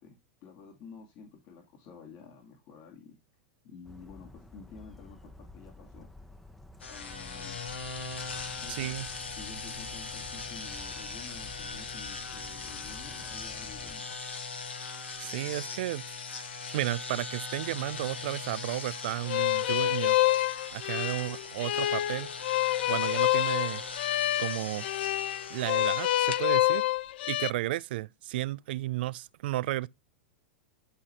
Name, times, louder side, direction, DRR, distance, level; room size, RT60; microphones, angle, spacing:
voice 1, 0.0-3.2 3.6-6.1 6.8-7.6 8.6-14.1, left 5 dB, 50° left, 2.3 m, -50 dB
Bird vocalization bird call bird song, 3.8-14.0, left 2 dB, 5° left, 1.0 m, -51 dB
sound 1, 6.8-26.4, left 4 dB, 85° left, 1.7 m, -40 dB
voice 2, 8.7-9.1 15.2-16.0 16.7-20.2 20.7-22.3 22.9-23.8 24.4-24.9 25.5-26.9 27.3-29.9, right 16 dB, 65° right, 0.4 m, -33 dB
sound 2, 19.3-27.5, left 15 dB, 65° left, 0.6 m, -27 dB
11.0 x 4.1 x 3.3 m
hypercardioid pair, 100°, 6 cm